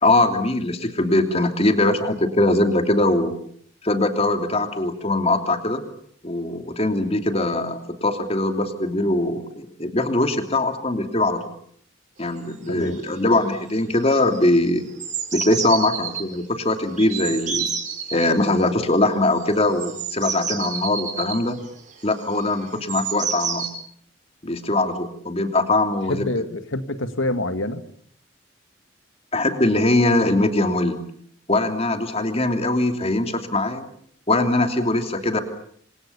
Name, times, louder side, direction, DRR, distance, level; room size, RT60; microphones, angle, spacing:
voice 1, 0.0-3.3 3.8-5.8 6.2-11.4 12.2-14.8 15.3-17.7 18.1-21.6 22.0-23.7 24.4-26.3 29.3-31.0 31.5-33.9 34.3-35.4, left 2 dB, 30° left, 6 dB, 3.0 m, -21 dB
sound 1, 12.4-12.5 12.7-13.1 13.4-13.7 13.9-16.2 17.0-18.3 19.4-23.7, right 7 dB, 40° right, 5.2 m, -30 dB
voice 2, 26.1-27.8, left 2 dB, 90° left, 10 dB, 2.2 m, -26 dB
29.0 x 26.0 x 7.0 m, 0.62 s
head